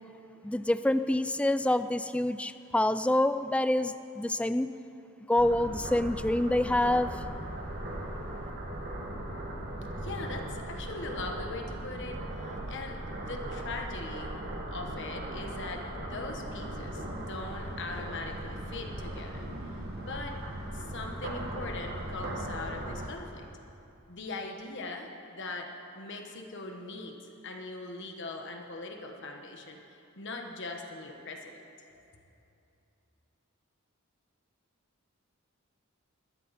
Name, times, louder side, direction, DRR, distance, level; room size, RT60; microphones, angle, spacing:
voice 1, 0.4-4.7 5.3-7.1, left 1 dB, 5° left, 12 dB, 0.3 m, -27 dB
sound 1, 5.4-23.1, right 1 dB, 50° right, 1.8 m, -38 dB
voice 2, 10.0-14.4 14.7-20.4 20.7-23.5 24.1-25.7 25.9-27.2 27.4-31.6 31.9-32.0, left 3 dB, 60° left, 2 dB, 1.3 m, -41 dB
22.0 x 14.0 x 4.2 m, 2.7 s
head